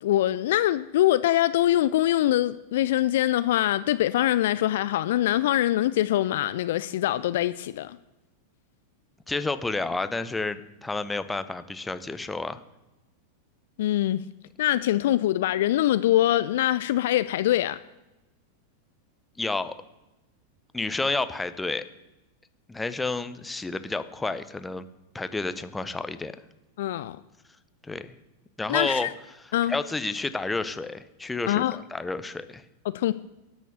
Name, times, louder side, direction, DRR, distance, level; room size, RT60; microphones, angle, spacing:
voice 1, 0.0-8.0 13.8-14.2 14.6-17.8 26.8-27.2 28.7-29.1 29.5-29.7 31.5-31.8 32.9-33.1, left 13 dB, 55° left, 0.3 m, -23 dB
voice 2, 9.3-12.6 19.4-19.7 20.7-21.8 22.7-24.9 25.1-26.3 27.8-28.1 28.6-29.1 29.7-32.6, left 3 dB, 10° left, 0.7 m, -30 dB
12.0 x 6.3 x 6.9 m
figure-of-eight pair, 90°, 0 cm